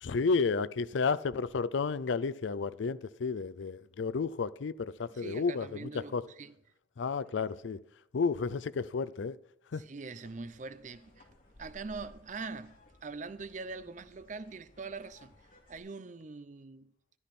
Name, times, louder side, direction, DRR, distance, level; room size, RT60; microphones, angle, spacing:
voice 1, 0.0-6.2 7.0-7.8 8.1-9.4 9.7-9.8, left 4 dB, 75° left, 0.5 m, -32 dB
voice 2, 5.1-6.5 9.7-11.3 11.6-15.3 15.7-16.9, right 4 dB, 40° right, 0.5 m, -43 dB
sound 1, 10.2-15.8, left 1 dB, 50° left, 2.3 m, -59 dB
13.5 x 12.0 x 4.3 m
head